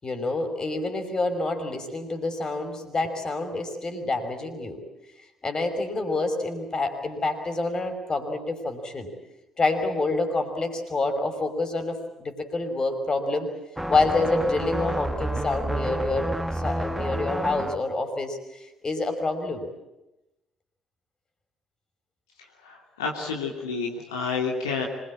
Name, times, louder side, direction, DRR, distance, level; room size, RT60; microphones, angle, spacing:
voice 1, 0.0-4.8 5.4-9.1 9.6-13.5 13.9-19.7, left 2 dB, 30° left, 6 dB, 5.6 m, -27 dB
sound 1, 13.8-17.8, right 1 dB, 5° right, 1.7 m, -29 dB
voice 2, 22.6-24.8, left 5 dB, 75° left, -1 dB, 2.9 m, -29 dB
26.0 x 22.0 x 8.8 m, 0.94 s
figure-of-eight pair, 50°, 2 cm